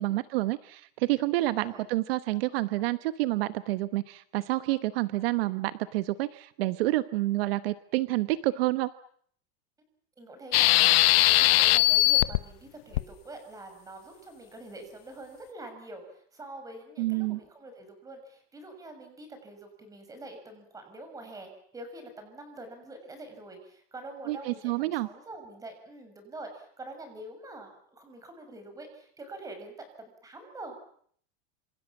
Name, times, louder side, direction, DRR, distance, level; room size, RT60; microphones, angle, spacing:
voice 1, 0.0-8.9 17.0-17.4 24.3-25.1, right 18 dB, 65° right, 13 dB, 1.2 m, -28 dB
voice 2, 1.4-1.8 10.2-30.8, right 2 dB, 10° right, 7 dB, 6.4 m, -45 dB
sound 1, 10.5-12.4 12.9-13.0, left 18 dB, 70° left, 1.1 m, -20 dB
27.0 x 27.0 x 7.3 m, 0.62 s
supercardioid pair, 170°, 31 cm